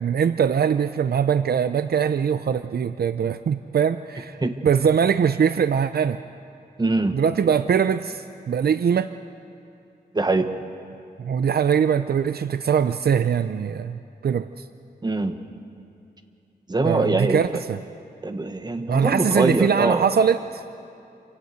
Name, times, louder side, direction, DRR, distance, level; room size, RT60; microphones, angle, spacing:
voice 1, 0.0-4.4 4.6-6.2 7.1-9.1 11.2-14.6 16.8-17.8 18.9-20.6, right 7 dB, 65° right, 11 dB, 0.6 m, -22 dB
voice 2, 6.8-7.2 10.1-10.5 15.0-15.4 16.7-17.4 18.2-20.0, right 2 dB, 25° right, 7 dB, 1.3 m, -22 dB
27.0 x 17.0 x 8.1 m, 2.6 s
wide cardioid pair, 135°, 18 cm